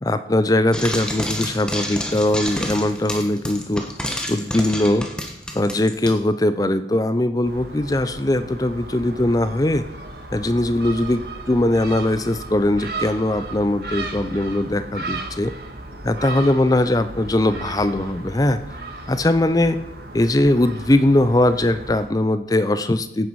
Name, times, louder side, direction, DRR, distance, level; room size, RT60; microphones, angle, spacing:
voice 1, 0.0-3.8 4.3-5.1 5.5-9.9 10.3-15.5 16.0-18.6 19.1-19.8 20.1-23.3, left 1 dB, 20° left, 12 dB, 0.6 m, -20 dB
Frying (food), 0.7-6.2, equal, 5° left, 1.4 m, -29 dB
Gull seagull, 7.5-22.1, right 2 dB, 60° right, 1.9 m, -35 dB
16.0 x 9.3 x 4.8 m, 0.88 s
head